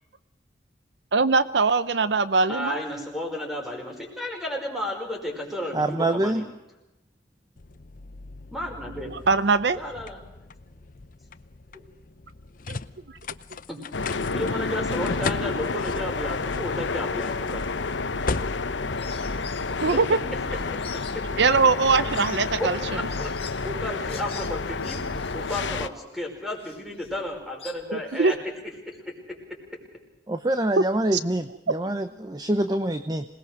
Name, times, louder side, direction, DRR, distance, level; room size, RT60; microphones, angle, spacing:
voice 1, 1.1-2.8 9.3-9.8 12.7-12.8 19.8-20.2 21.4-22.8 27.9-28.3 31.1-31.2, right 4 dB, 70° right, 15 dB, 0.7 m, -21 dB
voice 2, 2.5-6.4 8.5-9.1 9.7-10.2 11.7-11.8 13.7-13.8 14.3-17.6 19.3-19.4 19.9-20.0 20.5-20.8 22.6-22.7 23.0-25.0 25.3-28.4 28.9-29.1, left 1 dB, ahead, 1 dB, 5.2 m, -33 dB
voice 3, 5.7-6.4 30.3-33.2, right 1 dB, 20° right, 9 dB, 0.8 m, -25 dB
sound 1, 7.6-19.9, left 4 dB, 45° left, 0.7 m, -38 dB
sound 2, 13.9-25.9, left 3 dB, 80° left, 1.0 m, -30 dB
sound 3, 17.9-18.7 19.0-28.4, left 7 dB, 30° left, 2.1 m, -46 dB
26.5 x 19.5 x 6.5 m, 0.97 s
head